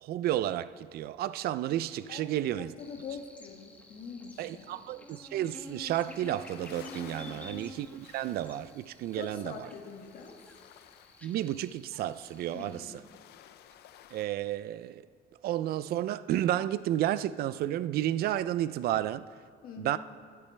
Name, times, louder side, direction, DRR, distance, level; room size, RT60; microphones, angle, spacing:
voice 1, 0.0-2.7 4.4-9.5 11.2-12.8 14.1-15.0 15.4-19.2 19.8-20.0, right 12 dB, 65° right, 0.5 m, -31 dB
voice 2, 2.1-4.8 7.2-7.6 9.1-10.4 12.5-13.0 19.6-20.0, left 5 dB, 60° left, 2.1 m, -44 dB
Buzz, 2.8-12.8, left 1 dB, 10° left, 1.3 m, -50 dB
sound 1, 5.9-14.3, left 11 dB, 75° left, 0.7 m, -55 dB
24.5 x 8.4 x 3.4 m
cardioid pair, 110°, 17 cm